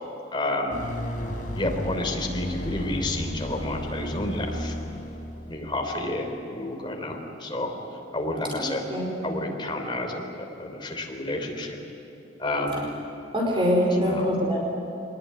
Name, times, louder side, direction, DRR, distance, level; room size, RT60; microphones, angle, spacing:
voice 1, 0.3-0.8 1.6-4.7 5.5-7.7 8.1-8.8 9.2-10.2 10.6-11.8 12.4-12.8 14.0-14.3, left 1 dB, 25° left, 2 dB, 3.4 m, -30 dB
sound 1, 0.7-6.0, left 1 dB, 50° left, 4.4 m, -33 dB
voice 2, 8.6-9.1 13.3-14.6, equal, 30° right, -1 dB, 4.6 m, -24 dB
23.0 x 20.0 x 9.8 m, 2.9 s
head